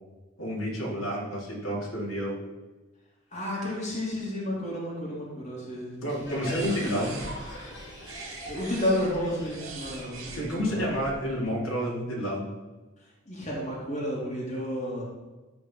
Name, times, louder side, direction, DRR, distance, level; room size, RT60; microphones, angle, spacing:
voice 1, 0.4-2.4 6.0-7.2 10.2-12.5, equal, 90° left, -4 dB, 3.5 m, -30 dB
voice 2, 3.3-6.1 6.6-6.7 8.4-10.9 13.3-15.0, left 1 dB, 35° left, -5 dB, 2.7 m, -31 dB
Crowd, 6.1-11.5, left 1 dB, 60° left, 3.1 m, -43 dB
sound 1, 6.1-11.1, right 3 dB, 75° right, 2.6 m, -43 dB
13.5 x 4.6 x 5.5 m, 1.2 s
head